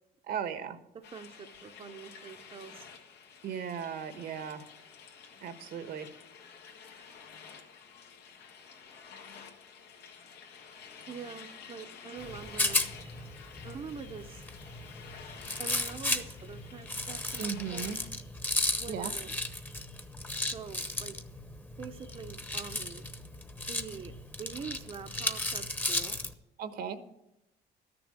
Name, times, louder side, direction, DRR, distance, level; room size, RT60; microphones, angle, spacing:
voice 1, 0.3-0.8 3.4-4.7 5.4-6.1 17.4-18.0 18.9-19.1 26.6-27.0, right 7 dB, 70° right, 10 dB, 1.2 m, -36 dB
sound 1, 1.0-18.1, left 6 dB, 90° left, 1.8 m, -51 dB
voice 2, 1.1-2.9 11.1-12.9 13.6-14.5 15.6-18.0 18.8-19.4 20.4-21.2 21.8-23.1 23.7-26.2, right 6 dB, 35° right, 5 dB, 0.8 m, -45 dB
Rattle, 12.2-26.3, left 1 dB, 10° left, 1.0 m, -35 dB
13.0 x 7.0 x 8.7 m, 0.89 s
cardioid pair, 110°, 17 cm